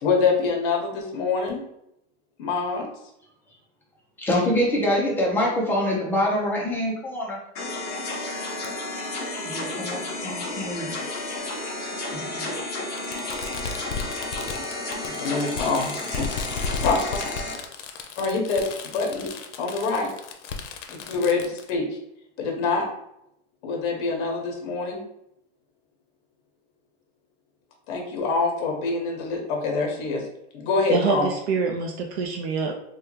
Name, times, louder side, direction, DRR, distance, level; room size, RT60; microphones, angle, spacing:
voice 1, 0.0-1.6 2.4-2.9 15.0-16.4 16.8-17.2 18.2-19.3 19.6-20.1 20.9-21.8 22.4-22.8 23.6-25.0 27.9-30.2 30.5-31.3, left 4 dB, 50° left, 1 dB, 1.0 m, -25 dB
voice 2, 4.2-7.4 9.4-10.9 12.1-12.6, left 1 dB, 5° left, -4 dB, 0.5 m, -25 dB
sound 1, 7.5-17.5, left 2 dB, 30° left, 0.9 m, -32 dB
Fireworks, 8.6-8.7 9.9-10.0 11.2-11.3 13.0-21.7, left 5 dB, 90° left, 0.6 m, -34 dB
voice 3, 30.9-32.7, right 5 dB, 70° right, 1 dB, 0.5 m, -25 dB
3.4 x 2.3 x 2.9 m, 0.79 s
supercardioid pair, 155°, 35 cm